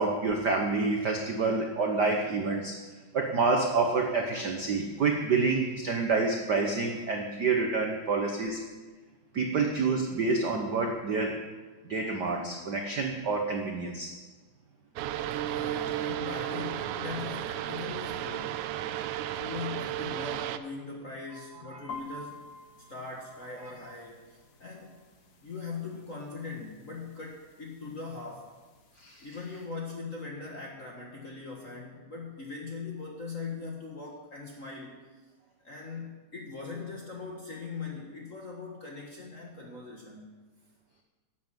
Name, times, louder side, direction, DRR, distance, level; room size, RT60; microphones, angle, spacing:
voice 1, 0.0-2.8 3.1-8.6 9.3-11.5 11.8-14.1 21.3-21.9 23.6-23.9 29.0-29.3, right 4 dB, 65° right, 2 dB, 1.0 m, -28 dB
sound 1, 15.0-20.6, right 12 dB, 90° right, 2.1 m, -33 dB
voice 2, 15.5-18.6 19.4-22.4 22.9-25.0 25.4-28.5 29.2-35.1 35.6-40.3, left 4 dB, 40° left, -1 dB, 1.2 m, -40 dB
sound 2, 21.9-29.7, left 3 dB, 80° left, 0.8 m, -50 dB
11.0 x 9.3 x 7.5 m, 1.3 s
omnidirectional pair, 3.4 m